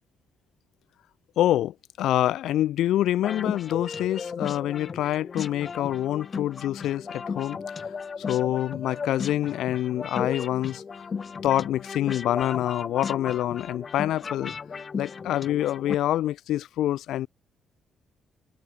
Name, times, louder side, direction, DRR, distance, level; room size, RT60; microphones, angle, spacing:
voice 1, 1.4-7.6 8.3-10.8 11.4-14.5 15.0-17.3, left 13 dB, 80° left, 2.5 m, -26 dB
sound 1, 3.2-15.9, left 5 dB, 40° left, 2.3 m, -35 dB
cardioid pair, 90°, 0 cm